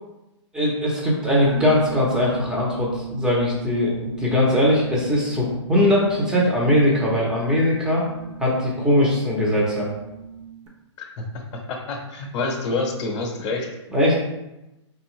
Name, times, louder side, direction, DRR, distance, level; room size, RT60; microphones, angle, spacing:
voice 1, 0.5-8.0 8.4-9.9 13.9-14.2, left 1 dB, 5° right, -5 dB, 0.9 m, -20 dB
sound 1, 1.4-10.7, right 6 dB, 75° right, 1.3 m, -37 dB
voice 2, 11.5-13.7, left 3 dB, 30° left, -1 dB, 1.0 m, -27 dB
4.2 x 3.6 x 3.2 m, 0.96 s
hypercardioid pair, 145°, 15 cm